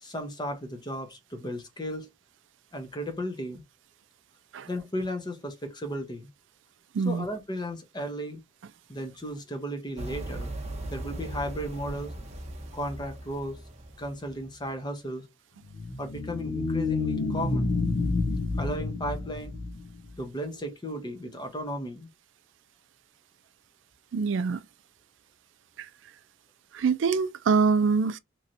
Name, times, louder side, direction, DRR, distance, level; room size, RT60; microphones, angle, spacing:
voice 1, 0.0-2.1 2.7-3.6 4.7-6.3 7.0-8.4 8.9-10.5 10.9-12.1 12.7-13.6 14.0-15.3 16.0-17.7 18.6-19.6 20.2-22.1, equal, 20° left, 0.8 m, -35 dB
sound 1, 10.0-14.7, right 1 dB, 35° right, 0.7 m, -39 dB
sound 2, 15.6-20.2, left 3 dB, 70° left, 0.5 m, -29 dB
voice 2, 24.1-24.6 25.8-25.9 26.7-28.2, right 5 dB, 70° right, 0.3 m, -24 dB
3.0 x 2.8 x 2.5 m
head